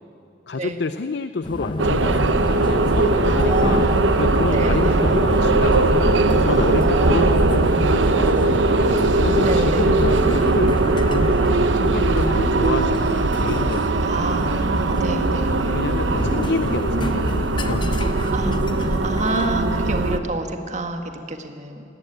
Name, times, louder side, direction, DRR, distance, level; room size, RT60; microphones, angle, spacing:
voice 1, 0.5-3.9 4.2-6.1 6.4-8.7 9.2-10.7 11.1-13.9 15.7-18.0, left 3 dB, 65° left, 12 dB, 0.5 m, -28 dB
sound 1, 1.4-19.5, left 1 dB, 25° left, 1.0 m, -30 dB
sound 2, 1.8-20.2, right 2 dB, 90° right, 1.0 m, -20 dB
voice 2, 3.2-3.9 4.5-5.2 6.8-7.4 9.4-9.9 14.0-15.8 18.3-21.8, right 2 dB, 40° right, 5 dB, 1.7 m, -28 dB
18.0 x 17.5 x 9.2 m, 2.7 s
head